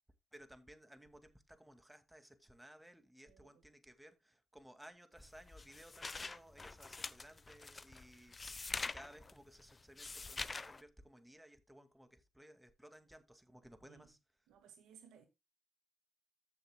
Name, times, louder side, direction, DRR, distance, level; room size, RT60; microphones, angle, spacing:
voice 1, 0.3-8.3 8.8-14.2, right 1 dB, 10° right, 2.2 m, -59 dB
voice 2, 3.2-3.6 13.8-14.1 14.5-15.3, right 8 dB, 90° right, 1.7 m, -61 dB
sound 1, 5.2-10.8, left 3 dB, 35° left, 0.8 m, -45 dB
14.5 x 6.9 x 2.3 m
supercardioid pair, 55°, 0 cm